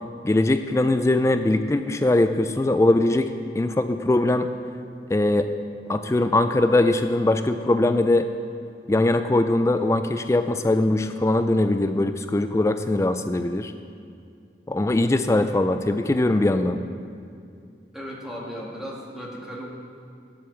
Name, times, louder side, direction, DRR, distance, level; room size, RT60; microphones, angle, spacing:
voice 1, 0.2-4.5 5.1-5.5 5.9-8.3 8.9-13.7 14.7-16.8, left 2 dB, 15° left, 9 dB, 0.3 m, -21 dB
voice 2, 17.9-19.7, equal, 5° right, -4 dB, 1.5 m, -36 dB
8.5 x 7.8 x 7.0 m, 2.5 s
head